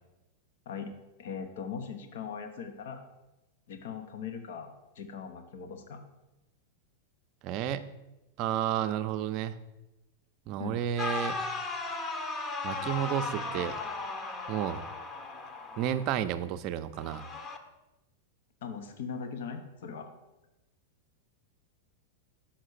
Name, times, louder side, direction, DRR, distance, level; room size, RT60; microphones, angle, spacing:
voice 1, 1.2-3.0 3.7-6.0 10.6-10.8 18.6-20.1, left 6 dB, 70° left, 7 dB, 1.0 m, -40 dB
voice 2, 7.4-7.9 8.4-9.6 10.5-11.5 12.6-13.8 14.5-14.9 15.8-17.3, right 10 dB, 45° right, 10 dB, 0.5 m, -31 dB
sound 1, 11.0-16.1 17.0-17.6, left 3 dB, 25° left, 0.9 m, -36 dB
5.9 x 5.6 x 6.4 m, 1.0 s
hypercardioid pair, 120°, 0 cm